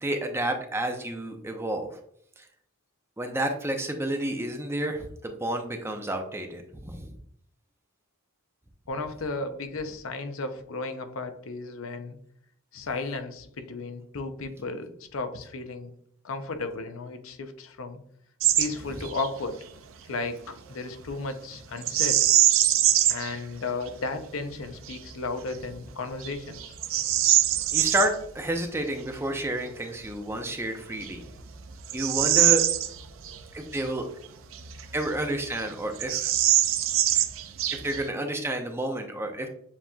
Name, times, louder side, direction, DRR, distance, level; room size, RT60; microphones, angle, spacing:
voice 1, 0.0-2.0 2.4-2.5 3.2-7.1 27.7-31.2 31.9-32.6 33.5-34.0 34.9-36.3 37.7-39.5, right 1 dB, 10° right, 4 dB, 0.5 m, -30 dB
voice 2, 8.9-12.2 12.7-15.9 16.2-18.0 18.6-19.6 20.0-22.3 23.1-26.8, left 3 dB, 80° left, 8 dB, 0.6 m, -34 dB
Bird vocalization bird call bird song, 18.4-18.7 19.0-19.3 21.8-23.3 23.9-24.0 24.6-25.0 25.5-25.7 26.2-28.1 30.2-30.3 31.0-33.4 33.7-33.8 34.5-35.3 35.6-35.7 36.0-38.1, right 13 dB, 75° right, 0.4 m, -23 dB
7.2 x 2.9 x 2.3 m, 0.66 s
head